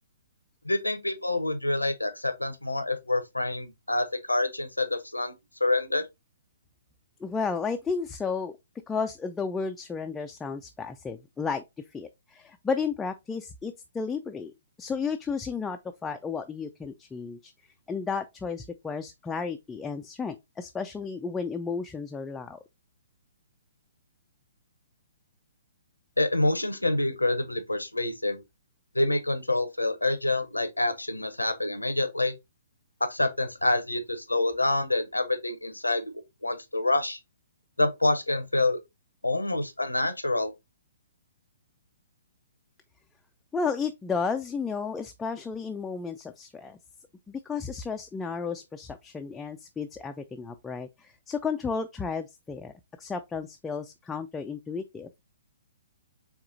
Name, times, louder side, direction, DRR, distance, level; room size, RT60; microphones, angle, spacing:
voice 1, 0.6-5.3 5.6-6.0 26.2-28.4 28.9-32.3 33.1-36.0 36.4-37.2 37.8-38.8 39.2-40.5, left 2 dB, 85° left, 0.7 m, -27 dB
voice 2, 7.2-8.6 8.9-11.6 11.9-14.5 14.8-17.5 17.9-22.6 43.5-46.8 47.3-55.2, left 5 dB, 10° left, 0.3 m, -33 dB
4.7 x 3.5 x 2.6 m
figure-of-eight pair, 125°, 0 cm